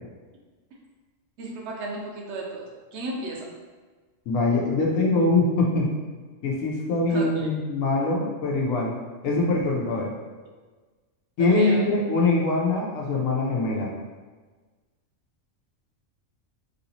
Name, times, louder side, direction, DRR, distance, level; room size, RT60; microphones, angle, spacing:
voice 1, 1.4-3.5 7.1-7.5 11.4-11.9, right 2 dB, 65° right, -1 dB, 0.9 m, -34 dB
voice 2, 4.3-5.9 6.4-8.9 9.2-10.1 11.4-13.9, left 2 dB, 90° left, -2 dB, 1.1 m, -23 dB
3.3 x 2.8 x 2.7 m, 1.4 s
omnidirectional pair, 1.3 m